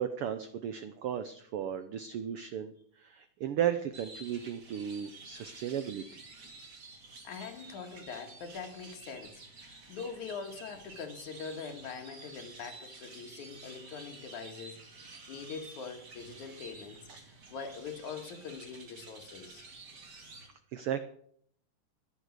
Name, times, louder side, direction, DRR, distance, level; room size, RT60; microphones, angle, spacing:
voice 1, 0.0-6.0 17.1-17.2 20.7-21.0, right 9 dB, 85° right, 10 dB, 1.2 m, -35 dB
sound 1, 3.9-20.5, right 3 dB, 35° right, 2.6 m, -51 dB
voice 2, 7.2-17.0 17.5-19.7, left 5 dB, 75° left, 5 dB, 3.1 m, -43 dB
14.5 x 10.5 x 6.5 m, 0.64 s
omnidirectional pair, 3.5 m